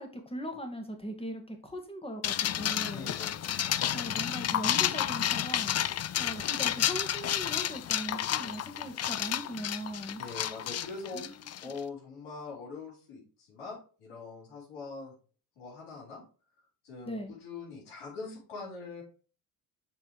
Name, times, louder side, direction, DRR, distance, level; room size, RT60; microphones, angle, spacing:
voice 1, 0.0-3.1 3.9-10.2 11.1-11.7 17.0-17.3, equal, 10° left, 4 dB, 2.4 m, -40 dB
sound 1, 2.2-11.8, left 11 dB, 35° left, 0.5 m, -31 dB
voice 2, 2.9-3.5 10.2-15.1 15.6-16.2 16.8-19.0, left 4 dB, 70° left, -5 dB, 4.5 m, -43 dB
7.1 x 4.4 x 4.9 m, 0.38 s
hypercardioid pair, 60°, 49 cm